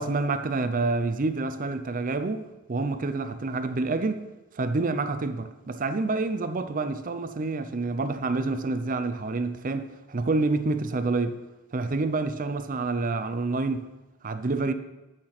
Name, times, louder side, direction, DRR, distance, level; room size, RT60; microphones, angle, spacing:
voice 1, 0.0-4.3 4.5-11.4 11.7-13.9 14.2-14.7, right 3 dB, 40° right, 0.6 m, -28 dB
8.9 x 6.0 x 5.9 m
head